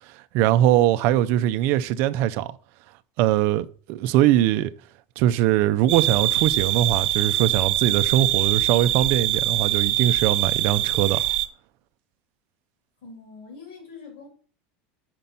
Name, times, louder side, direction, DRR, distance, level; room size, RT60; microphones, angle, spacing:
voice 1, 0.3-2.6 3.2-4.7 5.2-11.2, right 13 dB, 45° right, 0.4 m, -21 dB
sound 1, 5.9-11.5, right 15 dB, 75° right, 0.7 m, -23 dB
voice 2, 13.0-14.3, left 4 dB, 65° left, 2.9 m, -43 dB
5.7 x 5.1 x 5.4 m
supercardioid pair, 170°, 6 cm